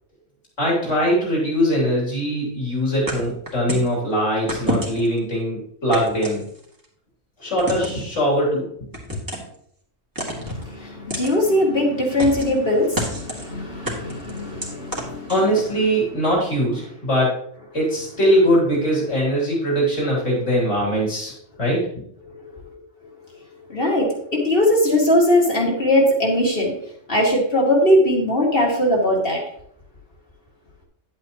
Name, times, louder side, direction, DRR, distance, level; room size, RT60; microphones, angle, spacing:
voice 1, 0.6-6.4 7.4-8.7 15.3-17.4 17.7-21.9, equal, 70° left, -4 dB, 3.7 m, -21 dB
sound 1, 3.1-3.9 4.5-5.2 5.9-6.8 7.6-8.1 8.9-9.5 10.2-10.6 11.1-11.3 12.2-12.6 12.9-13.5 13.8-15.7, equal, 15° right, 2.0 m, -28 dB
voice 2, 10.4-15.3 22.3-22.5 23.7-26.7 27.1-29.4, left 1 dB, 50° left, -1 dB, 2.3 m, -20 dB
10.5 x 8.6 x 3.0 m, 0.68 s
omnidirectional pair, 1.3 m